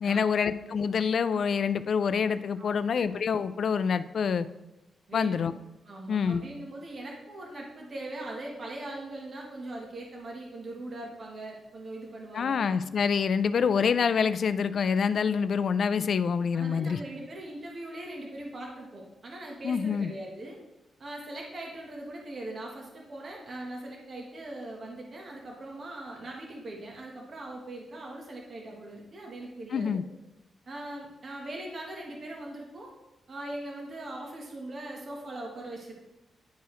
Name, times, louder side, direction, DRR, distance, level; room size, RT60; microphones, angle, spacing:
voice 1, 0.0-4.5 5.1-5.5 6.1-6.4 12.3-17.0 19.6-20.1 29.7-30.0, left 6 dB, 55° left, 13 dB, 0.3 m, -26 dB
voice 2, 5.1-5.4 5.8-12.6 16.5-20.6 21.0-30.0 30.7-32.9 33.3-35.9, right 1 dB, 40° right, -1 dB, 1.3 m, -40 dB
10.0 x 4.6 x 3.1 m, 0.96 s
cardioid pair, 120°, 0 cm